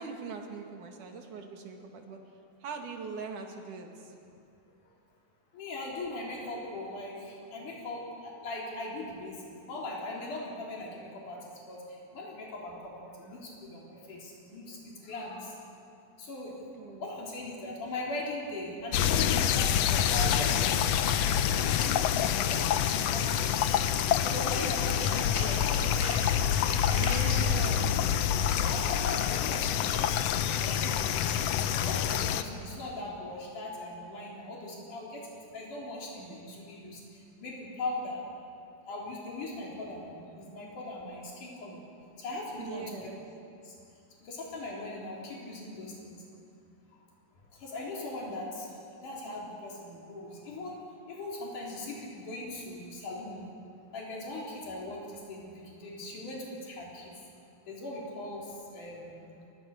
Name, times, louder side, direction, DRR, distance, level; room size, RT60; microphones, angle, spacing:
voice 1, 0.0-2.2 2.6-4.1 16.8-17.2 27.0-27.9 42.6-43.2, right 5 dB, 90° right, 3 dB, 3.7 m, -41 dB
voice 2, 5.5-15.5 16.2-16.6 17.0-21.9 22.4-23.8 24.1-26.7 26.9-28.0 28.5-31.3 31.8-35.3 35.5-38.3 38.9-41.9 42.2-43.1 43.6-43.7 44.2-46.2 47.5-48.7 49.0-50.8 51.1-53.4 53.9-57.1 57.7-59.1, left 2 dB, 90° left, -3 dB, 5.3 m, -40 dB
sound 1, 18.9-32.4, left 9 dB, 70° left, 1.7 m, -27 dB
Tools, 24.6-27.4 27.9-28.2 28.4-28.5, equal, 5° left, 3.3 m, -41 dB
27.5 x 22.5 x 6.6 m, 2.6 s
omnidirectional pair, 3.5 m